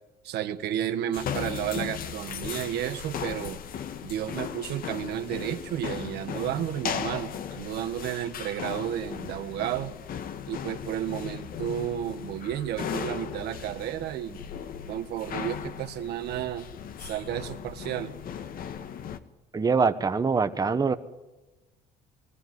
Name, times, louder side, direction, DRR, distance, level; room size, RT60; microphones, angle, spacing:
voice 1, 0.2-3.6 4.0-9.9 10.5-14.4 14.9-16.7 17.0-18.1, right 11 dB, 75° right, 9 dB, 1.4 m, -32 dB
sound 1, 1.1-19.2, left 8 dB, 60° left, 1.6 m, -37 dB
voice 2, 19.5-20.9, right 5 dB, 20° right, 9 dB, 1.2 m, -24 dB
21.0 x 14.5 x 9.5 m, 1.1 s
cardioid pair, 110°, 17 cm